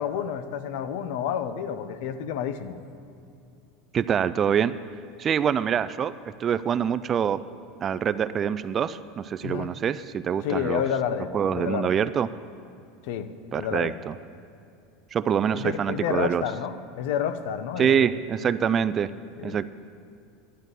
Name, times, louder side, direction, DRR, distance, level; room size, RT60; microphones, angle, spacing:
voice 1, 0.0-2.8 9.4-9.7 10.4-11.9 13.1-14.0 15.5-18.1 19.4-19.6, left 8 dB, 70° left, 11 dB, 0.9 m, -30 dB
voice 2, 3.9-4.7 5.2-7.4 7.8-10.8 11.3-12.3 13.5-14.1 15.1-16.4 17.8-19.1 19.4-19.7, right 8 dB, 30° right, 15 dB, 0.4 m, -25 dB
11.0 x 10.5 x 8.2 m, 2.5 s
supercardioid pair, 135°, 0 cm